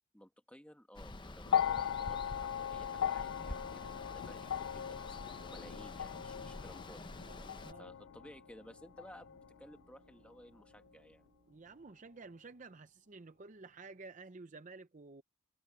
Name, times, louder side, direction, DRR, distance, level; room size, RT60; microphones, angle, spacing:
voice 1, 0.1-7.0 7.8-11.2, equal, 5° left, 1.6 m, -56 dB
Water, 0.9-7.7, left 2 dB, 20° left, 0.8 m, -48 dB
sound 1, 1.5-9.8 10.9-11.0, left 9 dB, 60° left, 0.3 m, -38 dB
sound 2, 4.7-12.4, right 2 dB, 60° right, 1.2 m, -69 dB
voice 2, 7.3-7.9 11.5-15.2, right 3 dB, 35° right, 0.6 m, -52 dB
head